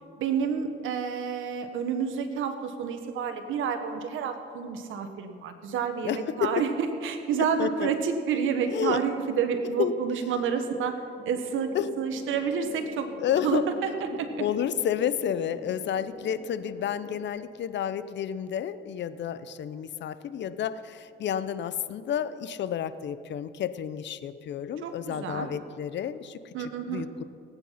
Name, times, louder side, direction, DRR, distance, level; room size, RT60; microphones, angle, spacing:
voice 1, 0.2-13.1 13.4-14.4 24.8-25.5 26.5-27.1, right 6 dB, 85° right, 7 dB, 1.4 m, -29 dB
voice 2, 6.0-6.5 7.6-7.9 8.7-9.0 9.8-9.9 10.5-10.6 11.7-11.9 13.2-13.6 14.1-26.5 26.9-27.2, left 9 dB, 65° left, 14 dB, 0.7 m, -30 dB
sound 1, 11.2-17.3, left 4 dB, 40° left, 2.5 m, -46 dB
18.5 x 9.0 x 5.8 m, 2.5 s
cardioid pair, 90°, 20 cm